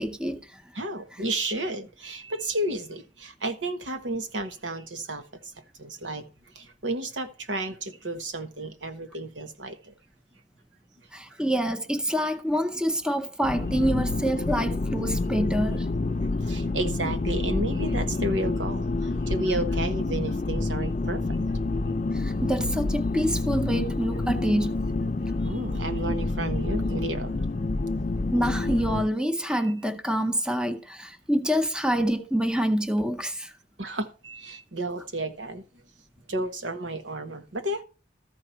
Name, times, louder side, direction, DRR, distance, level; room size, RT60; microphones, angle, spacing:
voice 1, 0.0-0.6 1.1-1.2 11.1-15.9 22.1-24.8 28.3-33.5, equal, 5° right, 0.6 m, -26 dB
voice 2, 0.7-5.2 5.8-6.3 6.5-9.9 16.5-18.8 19.3-21.2 25.4-27.3 33.8-35.6 36.3-37.8, right 1 dB, 85° right, 1.4 m, -32 dB
sound 1, 13.4-29.1, left 2 dB, 40° left, 0.4 m, -28 dB
14.0 x 4.8 x 5.7 m
head